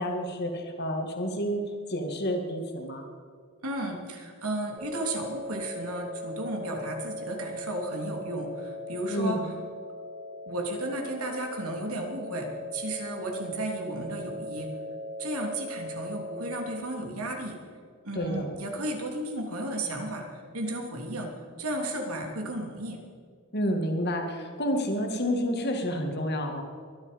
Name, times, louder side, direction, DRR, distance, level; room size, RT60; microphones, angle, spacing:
voice 1, 0.0-1.6 1.9-3.1 9.1-9.5 18.1-18.5 23.5-26.6, equal, 50° left, 3 dB, 2.1 m, -29 dB
voice 2, 3.6-9.5 10.5-12.5 12.7-14.7 15.2-17.6 18.0-21.3 21.6-23.0, right 1 dB, 85° right, 2 dB, 3.1 m, -34 dB
sound 1, 4.8-16.8, equal, 20° right, 3.3 m, -39 dB
22.5 x 11.5 x 5.3 m, 2.1 s
head